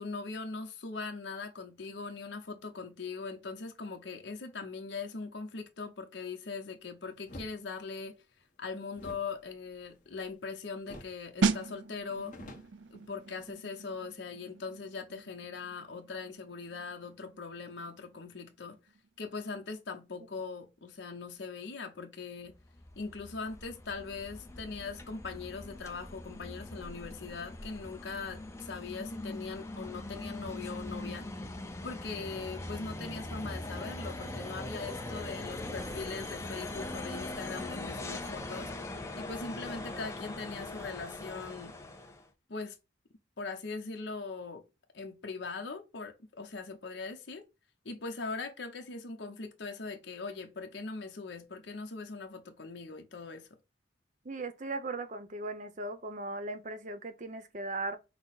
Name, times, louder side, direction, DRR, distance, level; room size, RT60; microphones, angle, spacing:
voice 1, 0.0-8.1 8.6-12.4 12.9-18.8 19.2-22.5 23.0-31.3 31.8-41.7 42.5-42.8 43.4-44.6 44.9-47.4 47.8-53.5, left 4 dB, 70° left, 0.7 m, -41 dB
sound 1, 7.3-7.5 8.9-10.5 10.9-11.2 11.5-11.6 12.0-13.5, left 1 dB, 45° left, 1.0 m, -49 dB
sound 2, 11.4-21.9 22.2-22.4, right 4 dB, 75° right, 0.4 m, -39 dB
sound 3, 22.5-42.3, left 2 dB, 15° left, 0.5 m, -41 dB
voice 2, 54.2-58.0, right 2 dB, 40° right, 0.7 m, -38 dB
5.8 x 2.0 x 4.0 m
head